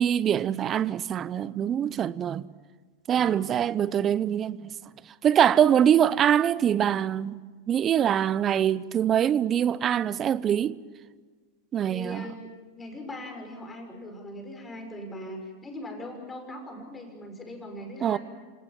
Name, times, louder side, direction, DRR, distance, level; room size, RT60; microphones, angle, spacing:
voice 1, 0.0-2.5 3.1-4.7 5.1-7.4 7.7-10.8 11.7-12.3 18.0-18.2, right 9 dB, 30° right, 0.8 m, -24 dB
voice 2, 3.1-3.5 11.9-18.2, left 1 dB, 15° left, 6.2 m, -40 dB
27.5 x 18.5 x 7.7 m
hypercardioid pair, 110°, 0 cm